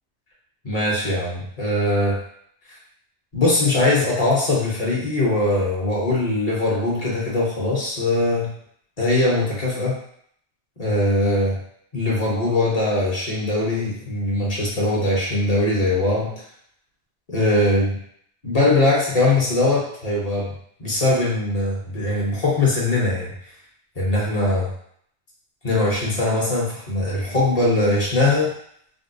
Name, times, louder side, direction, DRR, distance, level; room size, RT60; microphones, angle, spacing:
voice 1, 0.6-2.2 3.3-8.5 9.0-9.9 10.8-11.6 11.9-16.3 17.3-18.0 18.4-20.5 20.8-23.3 24.0-24.7 25.6-28.5, left 2 dB, 40° left, -5 dB, 0.9 m, -21 dB
3.5 x 2.2 x 2.6 m, 0.67 s
omnidirectional pair, 1.1 m